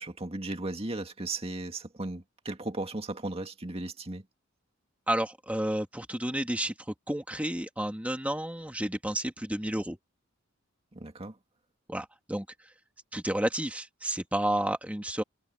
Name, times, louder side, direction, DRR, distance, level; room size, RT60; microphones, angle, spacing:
voice 1, 0.0-4.2 10.9-11.4, right 2 dB, 30° right, 2.1 m, -36 dB
voice 2, 5.1-10.0 11.9-12.7 13.1-15.2, right 1 dB, 5° right, 1.8 m, -31 dB
head